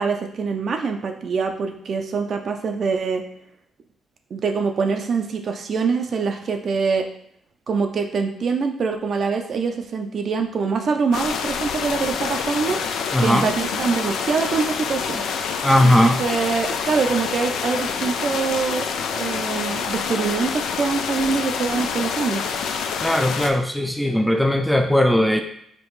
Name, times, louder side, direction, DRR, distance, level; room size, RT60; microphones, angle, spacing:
voice 1, 0.0-3.2 4.3-7.1 7.7-12.9 13.2-15.2 15.8-22.4, right 5 dB, 55° right, 5 dB, 0.5 m, -24 dB
sound 1, 11.1-23.5, left 6 dB, 80° left, 0.4 m, -27 dB
voice 2, 13.1-13.5 15.6-16.2 23.0-25.4, left 1 dB, ahead, 5 dB, 0.4 m, -18 dB
5.1 x 2.4 x 3.1 m, 0.70 s
cardioid pair, 90°, 0 cm